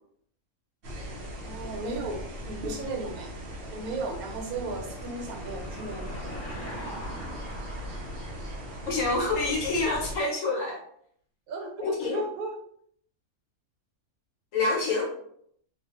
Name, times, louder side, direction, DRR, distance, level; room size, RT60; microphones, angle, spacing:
sound 1, 0.8-10.2, equal, 55° right, 0.7 m, -39 dB
voice 1, 1.4-3.3 3.7-6.2 11.5-12.5, right 3 dB, 80° right, 2 dB, 1.1 m, -35 dB
Car passing by / Engine, 3.6-10.2, equal, 15° left, 0.6 m, -44 dB
voice 2, 8.9-10.8 11.8-12.2 14.5-15.1, left 3 dB, 65° left, -1 dB, 1.0 m, -27 dB
2.4 x 2.3 x 2.8 m, 0.67 s
omnidirectional pair, 1.5 m